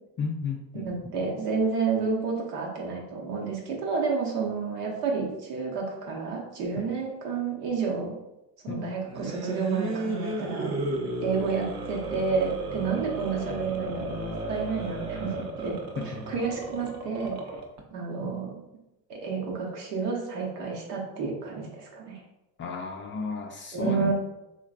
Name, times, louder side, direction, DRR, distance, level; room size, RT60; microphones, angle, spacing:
voice 1, 0.2-0.9 6.8-6.9 8.7-8.8 16.0-16.3 18.2-18.4 22.6-24.1, left 4 dB, 30° left, 2 dB, 0.3 m, -33 dB
voice 2, 0.7-8.1 8.6-10.7 11.2-15.8 16.0-17.4 17.9-18.6 19.1-22.2 23.7-24.1, right 5 dB, 90° right, -1 dB, 1.0 m, -30 dB
sound 1, 9.0-17.8, right 2 dB, 35° right, 0.7 m, -34 dB
3.7 x 3.2 x 2.4 m, 0.95 s
hypercardioid pair, 85°, 46 cm